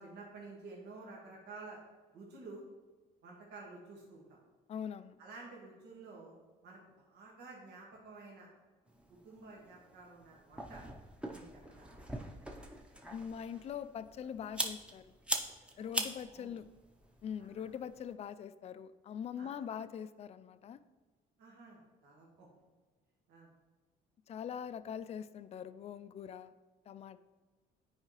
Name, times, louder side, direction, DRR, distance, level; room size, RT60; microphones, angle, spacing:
voice 1, 0.0-1.8 2.1-2.6 3.2-4.4 5.2-6.3 6.6-8.5 9.2-10.8 11.3-11.9 15.8-16.5 17.4-17.8 19.3-19.6 21.4-22.5 23.3-23.5, right 3 dB, 80° right, -3 dB, 1.6 m, -52 dB
voice 2, 4.7-5.2 13.1-15.2 15.8-16.7 17.2-20.8 24.3-26.5 26.9-27.2, left 8 dB, 40° left, 13 dB, 0.4 m, -43 dB
sound 1, 8.9-18.1, right 1 dB, 5° right, 0.7 m, -43 dB
9.6 x 4.8 x 3.1 m, 1.3 s
cardioid pair, 110°, 17 cm